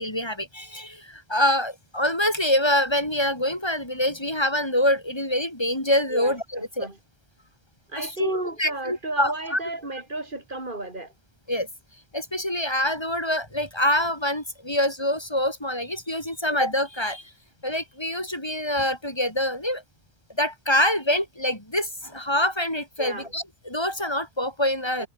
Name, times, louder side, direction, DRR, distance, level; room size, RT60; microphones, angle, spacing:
voice 1, 0.0-6.9 8.0-9.6 11.5-11.7 12.1-17.3 17.6-19.8 20.4-25.1, left 1 dB, 25° left, 5.3 m, -25 dB
voice 2, 6.1-7.0 7.9-11.1 23.0-23.3 25.0-25.1, right 2 dB, 55° right, 3.8 m, -33 dB
omnidirectional pair, 1.0 m